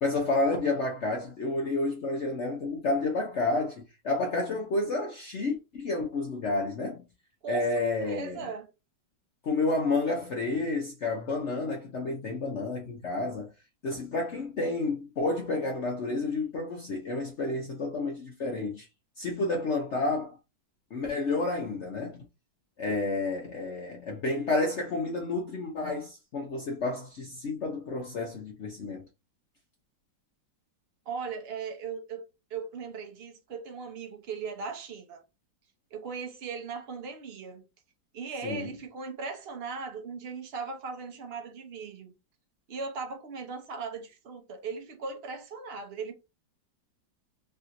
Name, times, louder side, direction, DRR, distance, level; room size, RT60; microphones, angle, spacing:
voice 1, 0.0-7.0 7.5-8.5 9.4-13.5 13.8-18.9 19.2-20.3 20.9-22.2 22.8-29.0 38.4-38.7, left 2 dB, 65° left, 0.7 m, -30 dB
voice 2, 8.0-8.7 31.1-35.2 35.9-37.6 38.1-42.1 42.7-46.1, right 5 dB, 65° right, 0.6 m, -38 dB
3.3 x 2.7 x 2.5 m
omnidirectional pair, 2.0 m